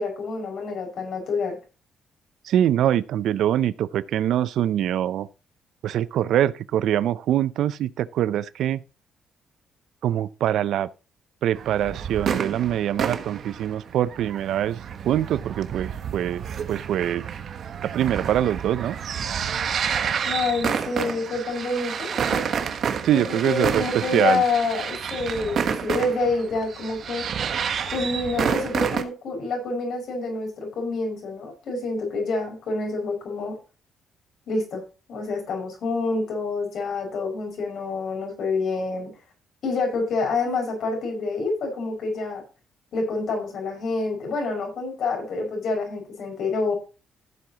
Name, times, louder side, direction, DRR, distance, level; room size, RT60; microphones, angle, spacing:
voice 1, 0.0-1.6 20.2-22.4 23.1-27.3 27.9-33.6 34.5-34.8 35.1-39.1 39.6-42.4 42.9-46.7, left 3 dB, 65° left, 5.8 m, -27 dB
voice 2, 2.4-5.3 5.8-8.8 10.0-10.9 11.4-16.4 16.7-17.2 17.8-19.0 23.0-24.4, right 11 dB, 75° right, 0.5 m, -24 dB
sound 1, 11.6-29.0, right 7 dB, 60° right, 1.2 m, -29 dB
14.5 x 7.7 x 2.9 m
cardioid pair, 90°, 0 cm